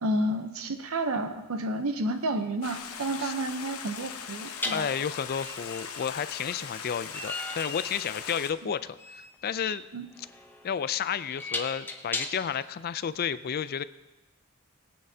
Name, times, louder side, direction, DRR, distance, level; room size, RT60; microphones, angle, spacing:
voice 1, 0.0-4.9 8.6-8.7 9.9-10.0, right 1 dB, 70° right, 8 dB, 0.7 m, -30 dB
sound 1, 2.2-2.3 4.6-12.6, left 2 dB, 10° left, 0.7 m, -38 dB
Stream, 2.6-8.5, left 7 dB, 85° left, 0.9 m, -40 dB
voice 2, 4.7-9.9 10.6-13.8, left 7 dB, 45° left, 15 dB, 0.4 m, -32 dB
20.5 x 8.7 x 2.8 m, 1.1 s
head